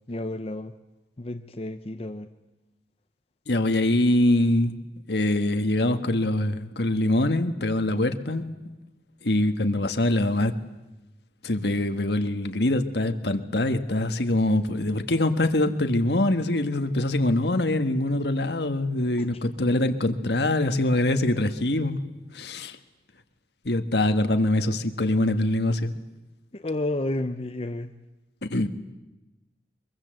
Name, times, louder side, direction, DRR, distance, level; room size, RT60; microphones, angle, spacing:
voice 1, 0.1-0.7 1.2-2.3 26.5-27.9, left 1 dB, 35° left, 6 dB, 0.8 m, -31 dB
voice 2, 3.5-4.8 5.1-8.4 9.2-10.5 11.4-22.0 22.3-22.8 23.6-25.9 28.4-28.7, left 1 dB, 65° left, 8 dB, 1.6 m, -24 dB
23.5 x 22.5 x 7.8 m, 1.0 s
head